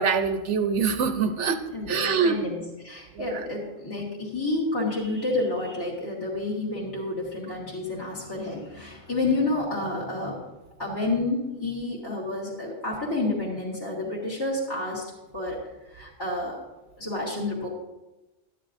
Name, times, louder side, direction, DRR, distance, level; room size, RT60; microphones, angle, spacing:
voice 1, 0.0-1.6 1.9-2.4 3.1-3.5, right 5 dB, 65° right, 8 dB, 0.9 m, -24 dB
voice 2, 1.7-10.4 10.8-15.0 15.3-15.6 15.9-16.6 17.0-17.7, left 2 dB, 20° left, -5 dB, 1.5 m, -29 dB
12.5 x 9.3 x 2.6 m, 1.0 s
omnidirectional pair, 1.4 m